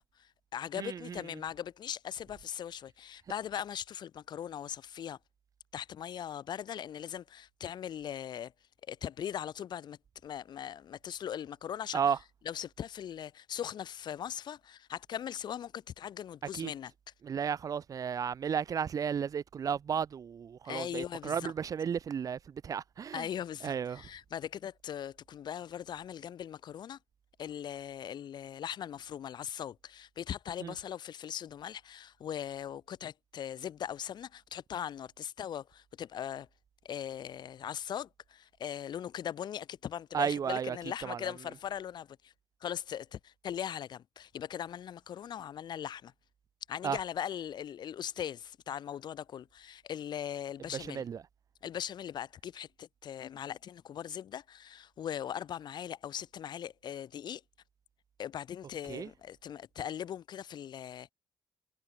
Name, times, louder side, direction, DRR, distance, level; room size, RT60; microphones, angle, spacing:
voice 1, 0.2-5.2 5.7-8.5 8.9-12.0 12.4-16.9 20.6-21.5 23.1-27.0 27.4-36.5 36.8-42.3 42.6-46.1 46.7-51.0 51.6-57.4 58.2-61.1, left 9 dB, 60° left, 5.0 m, -40 dB
voice 2, 0.8-1.2 11.9-12.2 16.5-16.7 17.2-23.3 23.6-24.0 30.6-30.7 40.1-40.8 41.0-41.2 46.8-47.0 50.7-51.2 58.9-59.1, right 7 dB, 45° right, 1.6 m, -33 dB
cardioid pair, 150°, 8 cm